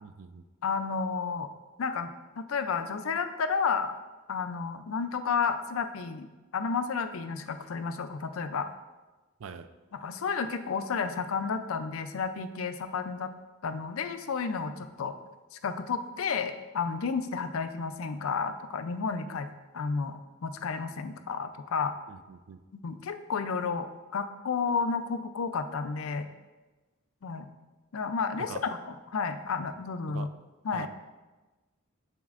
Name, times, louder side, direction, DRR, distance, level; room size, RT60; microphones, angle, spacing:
voice 1, 0.0-0.4 9.4-9.7 22.1-22.6 28.4-28.6 30.1-30.3 30.7-30.9, right 5 dB, 70° right, 11 dB, 0.4 m, -43 dB
voice 2, 0.6-1.5 1.8-2.1 2.4-3.9 4.3-6.3 6.5-8.7 9.9-13.3 13.6-15.1 15.6-19.5 19.7-21.9 22.8-26.3 27.2-27.5 27.9-28.5 28.9-30.3 30.6-30.9, left 5 dB, 85° left, 10 dB, 0.5 m, -31 dB
7.3 x 6.9 x 2.5 m, 1.2 s
head